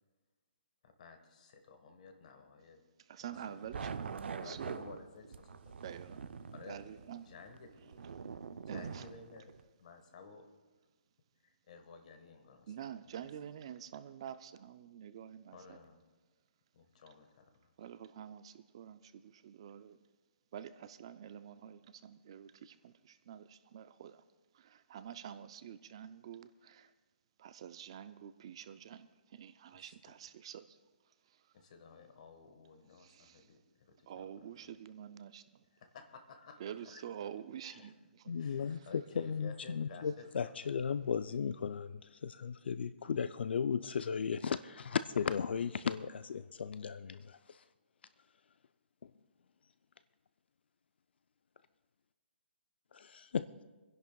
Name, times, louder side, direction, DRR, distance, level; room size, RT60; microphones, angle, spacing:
voice 1, 0.8-2.8 3.5-3.9 4.4-5.8 6.5-6.8 7.3-8.0 8.7-9.5 9.8-10.5 11.4-13.1 15.5-16.0 16.7-17.7 29.7-29.9 31.5-34.5 35.7-37.0 37.8-37.9 38.3-41.1, left 4 dB, 40° left, 7 dB, 1.4 m, -54 dB
voice 2, 3.0-4.8 5.8-6.3 6.7-7.3 8.7-9.1 12.7-15.8 17.8-20.0 20.5-24.2 24.5-26.9 27.4-31.6 33.0-33.5 34.1-35.7 36.6-38.3 38.7-38.9, right 9 dB, 30° right, 12 dB, 0.3 m, -48 dB
sound 1, 3.3-9.6, right 6 dB, 75° right, 0.6 m, -45 dB
voice 3, 38.3-47.6 49.0-49.1 52.9-53.5, left 6 dB, 70° left, 13 dB, 0.4 m, -36 dB
28.5 x 10.5 x 2.3 m, 1.3 s
hypercardioid pair, 170°, 6 cm